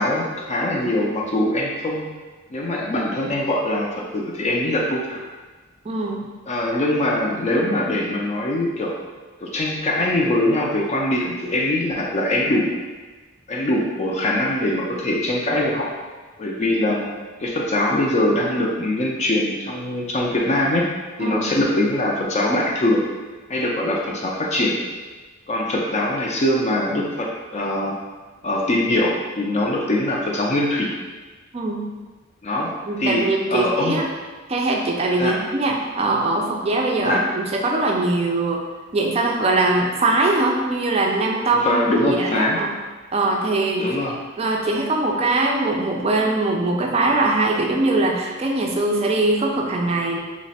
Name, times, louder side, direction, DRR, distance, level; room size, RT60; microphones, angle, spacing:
voice 1, 0.0-2.1 2.5-5.2 6.5-8.9 9.4-12.7 13.5-15.9 16.4-20.9 21.2-23.0 23.5-24.8 25.5-28.0 28.4-30.9 32.4-32.7 33.0-33.2 33.5-34.0 35.2-35.4 37.0-37.2 41.6-42.6 43.8-44.1, left 1 dB, 35° left, -2 dB, 0.4 m, -22 dB
voice 2, 5.9-6.2 21.2-21.5 31.5-31.9 32.9-34.0 34.5-38.6 38.9-42.7 43.1-43.9 44.4-50.2, right 2 dB, 30° right, 0 dB, 0.4 m, -21 dB
3.1 x 2.1 x 4.0 m, 1.3 s
head